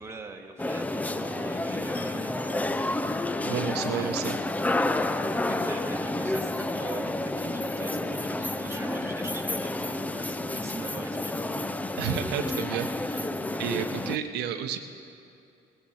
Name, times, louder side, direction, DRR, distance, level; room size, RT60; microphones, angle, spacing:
voice 1, 0.0-3.1 3.4-4.1 5.5-12.0, right 3 dB, 15° right, 2 dB, 1.2 m, -43 dB
sound 1, 0.6-14.2, left 2 dB, 10° left, 0.4 m, -30 dB
voice 2, 3.4-4.4 12.0-14.8, right 8 dB, 80° right, 6 dB, 0.8 m, -31 dB
18.0 x 13.5 x 4.3 m, 2.5 s
cardioid pair, 110°, 17 cm